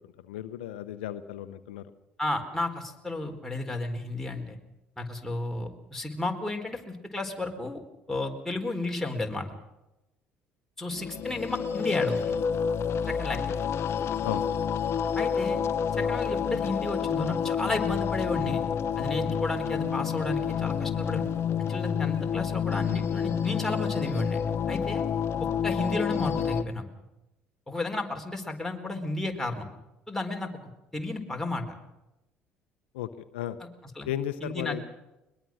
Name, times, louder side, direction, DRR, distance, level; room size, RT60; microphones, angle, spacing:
voice 1, 0.2-1.8 14.2-14.5 32.9-33.6 34.1-34.8, left 11 dB, 80° left, 11 dB, 0.8 m, -35 dB
voice 2, 2.2-4.6 5.0-7.8 8.1-9.5 10.8-12.4 13.1-13.5 15.2-15.6 16.0-18.6 19.0-21.3 21.7-25.0 25.6-26.8 27.7-29.7 30.1-30.5 30.9-31.6 33.6-33.7 34.0-34.1 34.4-34.8, left 2 dB, 5° left, 2 dB, 4.2 m, -32 dB
sound 1, 10.9-26.6, left 7 dB, 50° left, 1.1 m, -29 dB
22.0 x 21.5 x 6.3 m, 0.96 s
hypercardioid pair, 60°, 6 cm